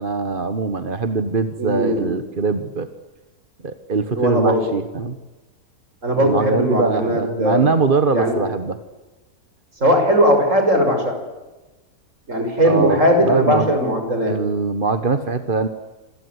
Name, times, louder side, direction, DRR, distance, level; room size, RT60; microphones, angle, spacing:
voice 1, 0.0-2.9 3.6-5.2 6.2-8.8 12.6-13.8 14.2-15.7, right 4 dB, 35° right, 10 dB, 1.4 m, -22 dB
voice 2, 1.6-2.2 4.1-4.6 6.0-7.7 8.1-8.4 9.8-11.2 12.3-14.4, equal, 55° right, 6 dB, 6.3 m, -18 dB
27.0 x 21.0 x 9.6 m, 1.1 s
omnidirectional pair, 1.6 m